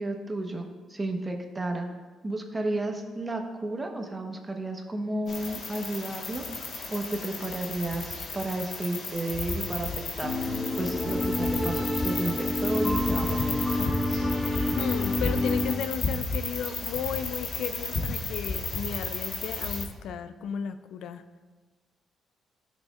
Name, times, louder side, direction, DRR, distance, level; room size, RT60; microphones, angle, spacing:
voice 1, 0.0-1.9 2.2-13.5, right 2 dB, 20° right, 4 dB, 1.1 m, -33 dB
sound 1, 5.3-19.8, left 3 dB, 55° left, 1.5 m, -33 dB
sound 2, 10.2-15.7, left 2 dB, 25° left, 1.8 m, -28 dB
voice 2, 14.7-21.2, left 7 dB, 80° left, 11 dB, 0.4 m, -34 dB
13.5 x 6.1 x 2.4 m, 1.3 s
cardioid pair, 90°, 0 cm